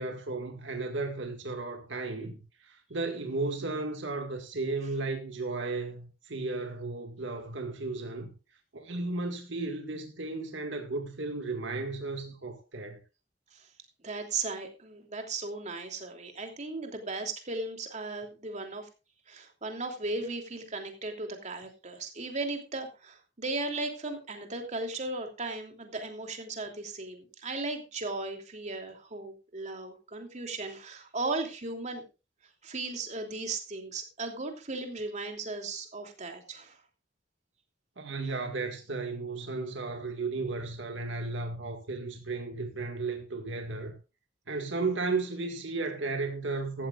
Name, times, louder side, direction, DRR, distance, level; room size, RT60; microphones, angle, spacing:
voice 1, 0.0-8.3 8.7-13.0 38.0-43.9 44.5-46.9, right 3 dB, 75° right, 2.0 m, -34 dB
voice 2, 14.0-18.9 19.3-32.0 32.6-36.8, right 3 dB, 40° right, 3.0 m, -36 dB
15.5 x 14.0 x 2.5 m
head